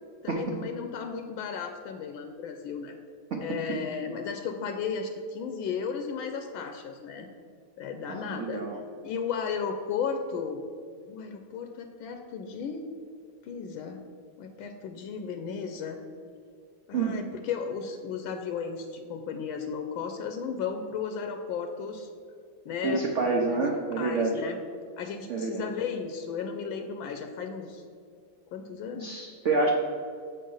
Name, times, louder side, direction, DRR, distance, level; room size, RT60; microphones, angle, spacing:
voice 1, 0.2-3.0 3.4-7.3 7.8-8.6 9.0-10.6 11.1-12.9 13.4-14.0 14.4-16.0 16.9-22.1 22.6-23.0 23.5-23.6 24.0-24.6 25.0-27.8 28.5-29.2, left 6 dB, 80° left, 6 dB, 1.4 m, -34 dB
voice 2, 8.1-8.8 16.9-17.2 22.8-24.3 25.3-25.7 29.0-29.7, right 3 dB, 65° right, 0 dB, 0.7 m, -28 dB
7.3 x 4.6 x 6.2 m, 2.2 s
omnidirectional pair, 2.2 m